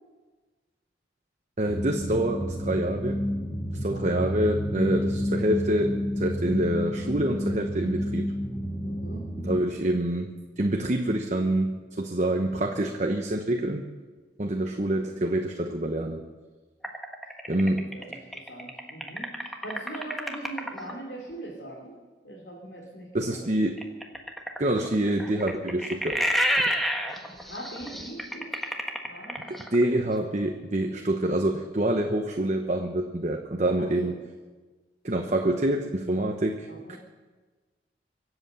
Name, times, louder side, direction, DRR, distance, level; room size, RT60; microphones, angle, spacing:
voice 1, 1.6-3.2 3.7-8.3 9.4-13.9 14.4-16.2 17.5-17.9 23.1-23.8 24.6-26.2 29.5-34.2 35.0-37.0, right 1 dB, 40° right, 4 dB, 0.9 m, -26 dB
sound 1, 1.7-9.6, equal, 25° left, 2.0 m, -30 dB
voice 2, 3.9-4.2 8.8-9.3 17.4-18.2 18.5-22.0 22.2-23.4 27.5-28.5 29.1-29.4 34.0-34.1 36.7-37.0, right 1 dB, 90° left, -3 dB, 3.0 m, -41 dB
sound 2, 16.8-20.9 23.8-29.8, equal, ahead, 1.3 m, -30 dB
24.0 x 8.1 x 6.9 m, 1.3 s
head